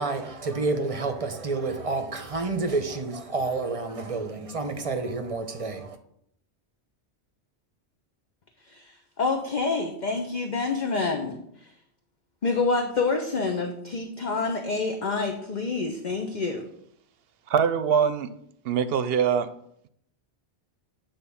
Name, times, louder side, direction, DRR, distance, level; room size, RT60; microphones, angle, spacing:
voice 1, 0.0-6.0, right 3 dB, 35° right, 0.8 m, -29 dB
voice 2, 8.7-11.7 12.4-16.6, left 4 dB, 45° left, 0.9 m, -27 dB
voice 3, 17.5-18.3 18.6-19.5, right 7 dB, 60° right, 0.8 m, -23 dB
9.2 x 3.7 x 6.9 m
omnidirectional pair, 1.2 m